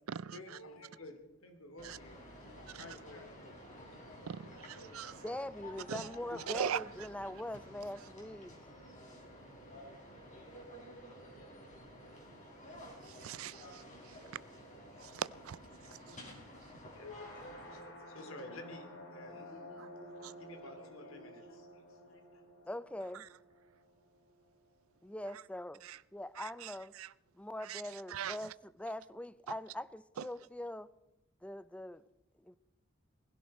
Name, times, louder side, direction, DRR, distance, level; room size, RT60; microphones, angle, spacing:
voice 1, 0.1-3.6 4.4-5.3 6.2-6.8 16.0-16.5 16.9-22.4, left 2 dB, 85° left, 2.7 m, -53 dB
sound 1, 1.8-17.8, equal, 40° left, 4.2 m, -52 dB
voice 2, 4.3-5.2 5.9-6.1 6.5-6.8 13.0-14.2 15.0-15.6 16.1-16.2 19.8-19.9 20.2-20.3 25.8-26.0 26.4-27.1 27.6-28.4 30.2-30.3, right 9 dB, 90° right, 0.4 m, -41 dB
voice 3, 5.2-8.6 22.7-23.3 25.0-25.8 26.1-26.9 27.4-30.9 31.4-32.0 32.4-32.5, left 1 dB, 5° left, 0.5 m, -42 dB
sound 2, 16.9-24.8, equal, 60° left, 3.8 m, -52 dB
20.0 x 16.0 x 4.2 m
head